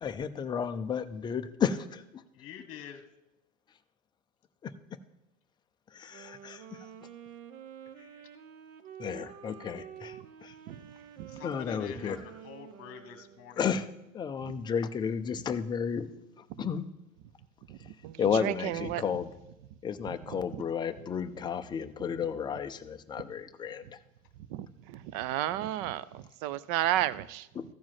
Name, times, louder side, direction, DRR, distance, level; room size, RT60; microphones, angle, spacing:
voice 1, 0.0-2.2 2.5-2.6 4.6-4.7 5.9-7.1 8.0-8.1 9.0-10.6 11.4-12.3 13.5-16.1 16.4-16.9 17.8-19.3 19.8-24.0 27.6-27.7, left 7 dB, 10° left, 0.4 m, -33 dB
voice 2, 2.4-3.0 11.3-12.2 12.4-13.6, left 8 dB, 30° left, 1.3 m, -46 dB
Wind instrument woodwind instrument, 6.0-13.7, right 9 dB, 65° right, 1.0 m, -49 dB
voice 3, 17.7-19.0 20.5-20.6 24.4-27.5, right 14 dB, 45° right, 0.6 m, -33 dB
14.0 x 4.8 x 7.5 m
hypercardioid pair, 105°, 42 cm